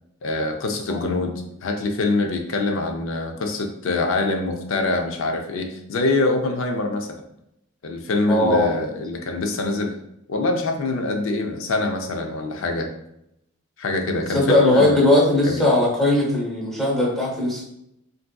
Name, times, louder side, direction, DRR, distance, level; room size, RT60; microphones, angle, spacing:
voice 1, 0.2-1.3 1.6-7.2 7.8-10.0 10.3-12.9 13.8-15.0 15.5-15.6, left 2 dB, 60° left, 3 dB, 0.4 m, -24 dB
voice 2, 8.3-8.7 14.1-17.6, left 1 dB, ahead, -4 dB, 0.8 m, -19 dB
3.4 x 2.6 x 2.2 m, 0.79 s
head